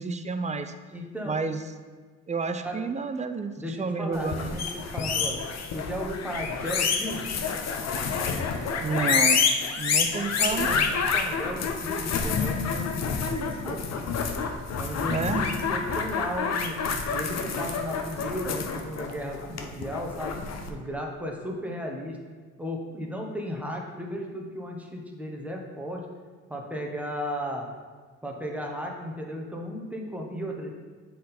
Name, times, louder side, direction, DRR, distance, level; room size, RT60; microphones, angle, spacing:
voice 1, 0.0-0.7 1.2-1.6 2.3-4.6 8.8-9.4 9.8-11.0 15.1-15.4, right 4 dB, 25° right, 9 dB, 0.4 m, -30 dB
voice 2, 0.9-1.4 2.6-2.8 3.6-5.4 5.7-7.3 10.5-13.8 14.8-16.8 17.1-20.3 20.7-22.2 22.6-26.1 26.5-27.7 28.2-30.7, equal, 5° right, 0 dB, 1.1 m, -35 dB
sound 1, 4.2-20.7, left 5 dB, 60° left, 0.7 m, -28 dB
7.3 x 3.9 x 4.3 m, 1.4 s
cardioid pair, 90°, 30 cm